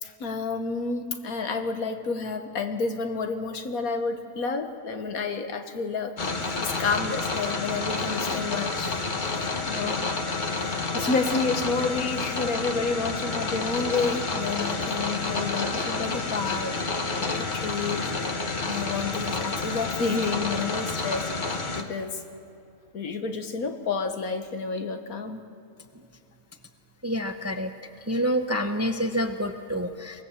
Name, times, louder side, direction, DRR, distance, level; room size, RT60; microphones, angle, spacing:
voice 1, 0.0-6.1 6.6-9.0 9.7-10.0 10.6-16.8 17.2-18.1 18.5-21.3 21.8-22.2 22.9-25.4, left 4 dB, 80° left, 7 dB, 1.8 m, -30 dB
sound 1, 6.2-21.8, left 3 dB, 35° left, 1.4 m, -29 dB
voice 2, 27.0-27.7 28.1-30.2, equal, 15° right, 7 dB, 0.6 m, -27 dB
23.5 x 19.0 x 7.4 m, 2.6 s
omnidirectional pair, 1.5 m